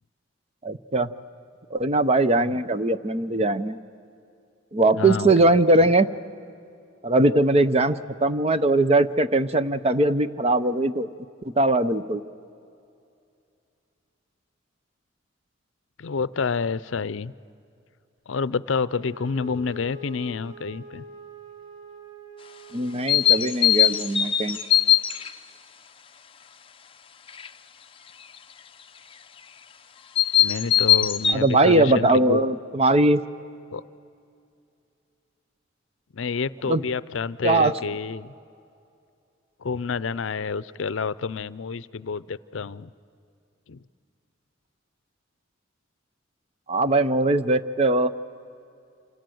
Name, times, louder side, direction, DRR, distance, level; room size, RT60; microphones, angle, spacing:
voice 1, 0.6-1.1 1.7-3.8 4.7-6.1 7.0-11.1 11.4-12.2 22.7-24.6 31.3-33.2 36.6-36.8 37.4-37.7 46.7-48.1, right 2 dB, 30° right, 12 dB, 0.7 m, -20 dB
voice 2, 5.0-5.6 16.0-17.3 18.3-21.0 30.4-32.4 33.7-33.8 36.1-38.3 39.6-42.9 43.7-43.8, left 5 dB, 75° left, 17 dB, 0.5 m, -29 dB
Wind instrument woodwind instrument, 18.9-23.5, left 2 dB, 65° right, 3.2 m, -44 dB
sound 1, 23.1-25.3 27.3-27.5 30.1-31.3, left 10 dB, 25° left, 0.7 m, -20 dB
28.0 x 26.0 x 7.8 m, 2.5 s
head